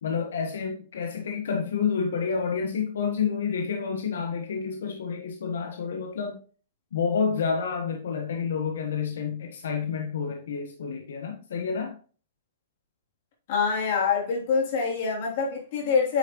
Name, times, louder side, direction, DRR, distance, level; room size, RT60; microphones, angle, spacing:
voice 1, 0.0-6.4 6.9-12.0, left 6 dB, 90° left, 1.2 m, -29 dB
voice 2, 13.5-16.2, left 5 dB, 45° left, 3.0 m, -25 dB
8.9 x 5.3 x 3.0 m
hypercardioid pair, 165°, 0 cm